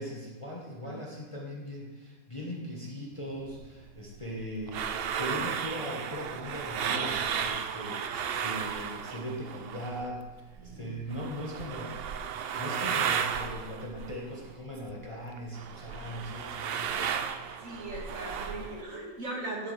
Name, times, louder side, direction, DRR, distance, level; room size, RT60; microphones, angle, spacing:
voice 1, 0.0-12.0 12.5-17.1, equal, 20° left, -3 dB, 1.1 m, -39 dB
sound 1, 3.5-10.2 10.5-15.1 15.4-18.8, right 7 dB, 75° right, 0.5 m, -34 dB
voice 2, 10.6-10.9 17.6-19.7, right 2 dB, 60° right, -2 dB, 2.1 m, -39 dB
10.5 x 7.3 x 3.2 m, 1.4 s
omnidirectional pair, 1.6 m